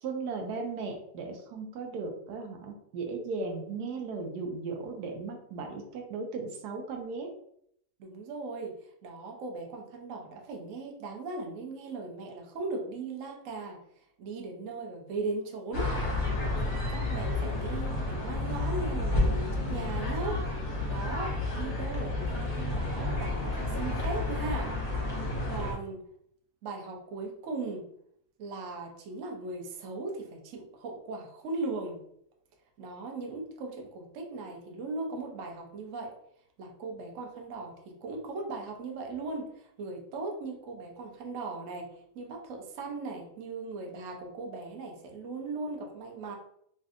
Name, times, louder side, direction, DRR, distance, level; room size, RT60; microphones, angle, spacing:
voice 1, 0.0-7.3, right 4 dB, 85° right, 3 dB, 1.1 m, -36 dB
voice 2, 8.0-8.8 9.0-13.8 14.2-15.9 16.3-20.4 20.8-24.7 25.5-26.0 26.6-27.9 28.4-32.0 32.8-36.1 36.6-46.4, right 3 dB, 60° right, 1 dB, 0.9 m, -38 dB
sound 1, 15.7-25.7, left 2 dB, 35° left, 0.7 m, -31 dB
3.2 x 2.6 x 2.5 m, 0.70 s
omnidirectional pair, 1.7 m